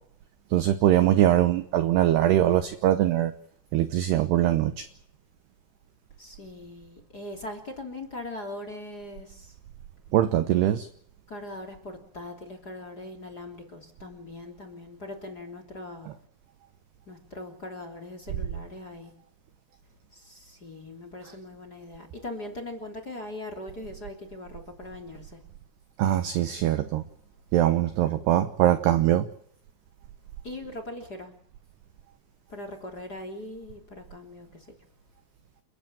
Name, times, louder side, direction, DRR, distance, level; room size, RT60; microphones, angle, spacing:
voice 1, 0.5-3.3 3.7-4.9 10.1-10.9 26.0-27.0 27.5-29.3, right 12 dB, 75° right, 12 dB, 2.5 m, -22 dB
voice 2, 6.2-9.5 11.3-16.1 17.1-19.1 20.1-25.4 30.4-31.3 32.5-34.7, left 1 dB, 25° left, 8 dB, 2.8 m, -40 dB
30.0 x 13.5 x 8.9 m, 0.65 s
omnidirectional pair, 6.0 m